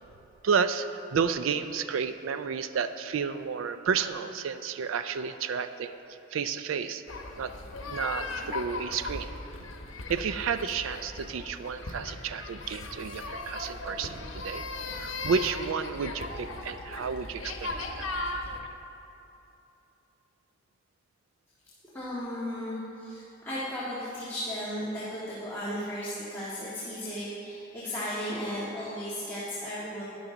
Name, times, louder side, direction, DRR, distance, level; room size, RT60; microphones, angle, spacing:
voice 1, 0.4-5.9 6.3-7.0 7.4-7.5 7.9-9.3 10.1-14.6 15.0-18.1 18.6-18.7, right 6 dB, 85° right, 11 dB, 0.4 m, -31 dB
sound 1, 7.1-18.6, left 2 dB, 90° left, 0.9 m, -38 dB
voice 2, 21.9-30.0, equal, 10° left, -11 dB, 1.7 m, -35 dB
12.0 x 10.5 x 3.9 m, 2.9 s
head